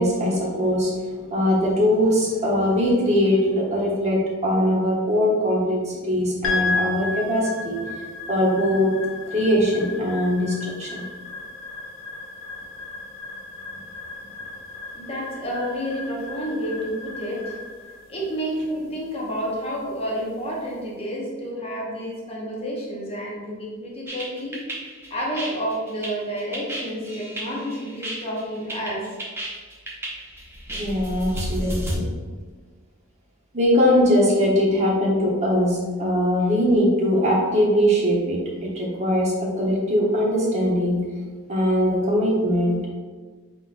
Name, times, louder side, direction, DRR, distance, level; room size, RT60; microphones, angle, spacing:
voice 1, 0.0-7.8 8.3-8.9 9.3-11.0 30.8-32.0 33.5-41.0 41.5-42.9, equal, 30° right, -4 dB, 1.0 m, -21 dB
sound 1, 6.4-20.8, left 3 dB, 60° left, 0.7 m, -34 dB
voice 2, 14.9-17.6 18.1-24.6 25.1-29.1 31.3-31.4, equal, 30° left, -4 dB, 1.0 m, -30 dB
sound 2, 24.1-32.0, right 1 dB, 10° right, 0.7 m, -32 dB
4.3 x 3.8 x 2.6 m, 1.5 s
head